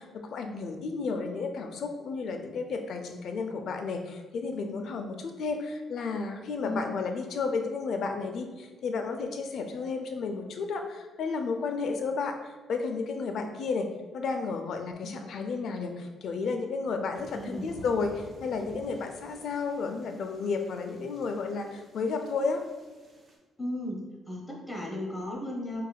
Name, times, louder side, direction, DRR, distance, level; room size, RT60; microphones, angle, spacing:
voice 1, 0.0-13.9 14.1-22.6, left 4 dB, 70° left, 5 dB, 0.4 m, -32 dB
voice 2, 6.6-6.9 15.0-15.2 17.3-17.7 23.6-24.0 24.3-25.8, left 1 dB, 5° left, -2 dB, 1.0 m, -35 dB
sound 1, 17.1-23.4, right 1 dB, 50° right, 0.9 m, -52 dB
4.7 x 2.4 x 2.3 m, 1.3 s
cardioid pair, 90°, 0 cm